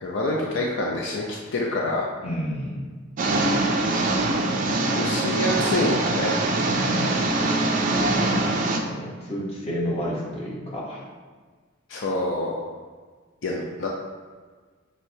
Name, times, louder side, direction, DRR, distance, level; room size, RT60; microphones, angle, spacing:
voice 1, 0.0-1.2 1.5-2.0 4.9-6.4 11.9-12.6 13.4-13.9, left 2 dB, 60° left, -2 dB, 0.4 m, -26 dB
voice 2, 2.2-2.9 4.7-5.3 6.7-7.4 8.0-8.5 8.8-11.0, equal, 30° left, -5 dB, 0.8 m, -31 dB
sound 1, 3.2-8.8, right 2 dB, 40° right, 0.3 m, -23 dB
6.0 x 2.1 x 2.6 m, 1.5 s
head